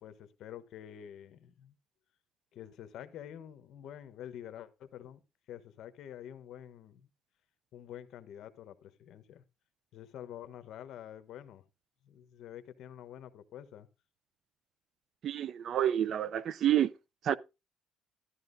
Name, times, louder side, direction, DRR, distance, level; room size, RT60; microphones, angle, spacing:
voice 1, 0.0-1.8 2.5-5.2 5.5-7.1 7.7-9.4 9.9-11.6 12.0-13.9, left 10 dB, 65° left, 1.0 m, -48 dB
voice 2, 15.2-16.9 17.2-17.4, right 11 dB, 50° right, 0.4 m, -28 dB
13.0 x 12.0 x 2.6 m
cardioid pair, 145°, 0 cm